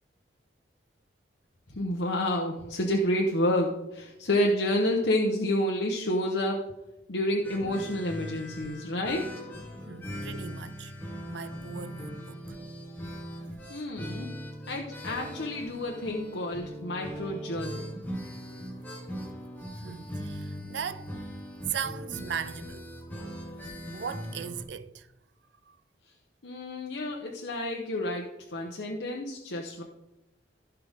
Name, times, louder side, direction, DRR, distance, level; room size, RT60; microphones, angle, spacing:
voice 1, 1.7-6.6 7.1-9.3 13.7-14.3 14.7-18.0 26.4-28.2 28.5-29.8, left 1 dB, 85° left, 1.1 m, -29 dB
sound 1, 7.4-24.6, equal, 10° left, 1.8 m, -40 dB
voice 2, 9.9-12.6 19.8-21.3 21.7-22.8 23.9-25.1 25.7-25.8, right 7 dB, 80° right, 0.5 m, -38 dB
15.5 x 5.9 x 3.6 m
head